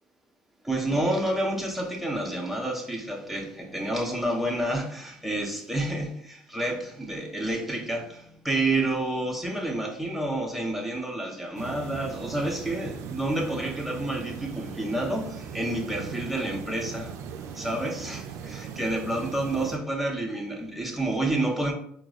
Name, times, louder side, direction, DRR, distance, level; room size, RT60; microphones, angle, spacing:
voice 1, 0.6-17.2 17.5-21.7, right 1 dB, 5° right, 0.8 m, -29 dB
sound 1, 11.6-19.8, right 7 dB, 65° right, 0.4 m, -39 dB
4.6 x 2.0 x 2.4 m
supercardioid pair, 80°, 6 cm